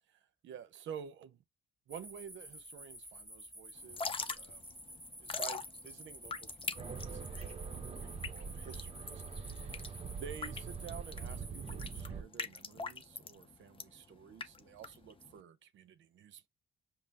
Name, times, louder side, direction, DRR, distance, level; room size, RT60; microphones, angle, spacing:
voice 1, 0.1-1.4 1.9-4.8 5.2-9.8 10.1-16.5, right 8 dB, 70° right, 0.7 m, -51 dB
sound 1, 1.9-12.0, equal, ahead, 1.2 m, -51 dB
Drip / Trickle dribble, 3.8-15.4, left 4 dB, 25° left, 0.6 m, -43 dB
sound 2, 6.8-12.2, right 5 dB, 30° right, 0.8 m, -43 dB
5.4 x 2.0 x 4.1 m
cardioid pair, 90°, 20 cm